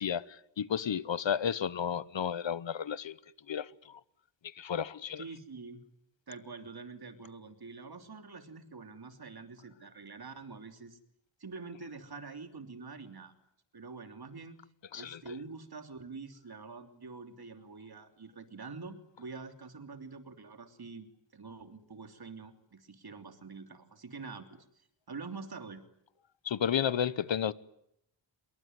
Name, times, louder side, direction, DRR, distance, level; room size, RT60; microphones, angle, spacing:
voice 1, 0.0-3.2 3.5-4.0 4.4-5.2 14.9-15.4 26.4-27.5, left 8 dB, 75° left, 1.0 m, -32 dB
voice 2, 5.2-5.8 6.3-11.0 11.4-13.3 13.7-14.6 14.9-21.1 21.3-25.8, right 4 dB, 55° right, 3.2 m, -46 dB
27.5 x 22.5 x 9.5 m
wide cardioid pair, 90°, 46 cm